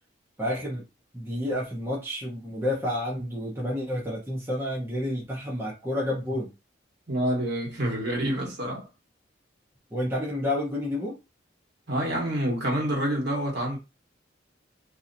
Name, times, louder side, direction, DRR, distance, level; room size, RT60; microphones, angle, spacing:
voice 1, 0.4-0.8 1.1-6.5 9.9-11.2, left 1 dB, 15° right, 0.9 m, -30 dB
voice 2, 7.1-8.9 11.9-13.8, right 1 dB, 60° right, 1.3 m, -27 dB
2.8 x 2.8 x 2.6 m
head